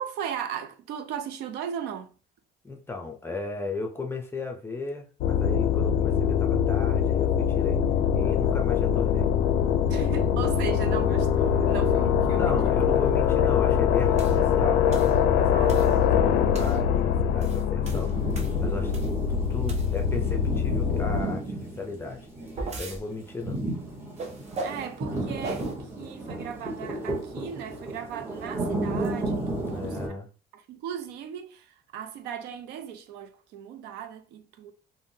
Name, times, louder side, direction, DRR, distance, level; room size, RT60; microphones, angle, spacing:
voice 1, 0.0-2.1 9.9-12.8 13.1-13.2 15.5-16.0 24.6-30.1 30.5-34.7, right 8 dB, 85° right, 0.5 m, -37 dB
voice 2, 2.6-7.8 8.1-9.3 11.5-11.8 12.4-18.2 18.6-19.0 19.3-22.3 22.8-23.6 29.6-30.3, left 3 dB, 15° left, 0.6 m, -35 dB
sound 1, 5.2-21.2, left 8 dB, 85° left, 0.4 m, -23 dB
sound 2, 14.2-14.4 14.9-15.2 15.7-16.0 16.5-16.8 17.3-19.2 19.6-20.2 22.1-23.0 24.2-24.9 25.4-25.7, right 3 dB, 40° right, 0.6 m, -38 dB
sound 3, 17.8-30.1, right 2 dB, 15° right, 1.2 m, -33 dB
3.4 x 2.1 x 2.7 m
cardioid pair, 110°, 17 cm